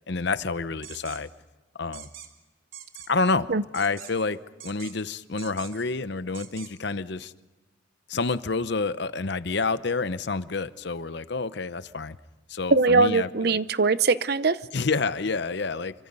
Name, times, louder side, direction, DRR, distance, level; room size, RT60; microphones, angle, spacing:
voice 1, 0.1-1.3 1.8-2.1 3.1-4.4 4.6-7.3 8.1-12.2 12.5-13.6 14.7-15.9, left 3 dB, 60° left, 0.8 m, -28 dB
sound 1, 0.8-1.2 1.9-2.3 2.7-3.1 3.7-4.3 4.6-5.0 5.4-5.9 6.3-6.7, right 9 dB, 85° right, 3.2 m, -43 dB
voice 2, 12.7-14.6, right 3 dB, 50° right, 0.7 m, -21 dB
27.5 x 25.0 x 5.4 m
head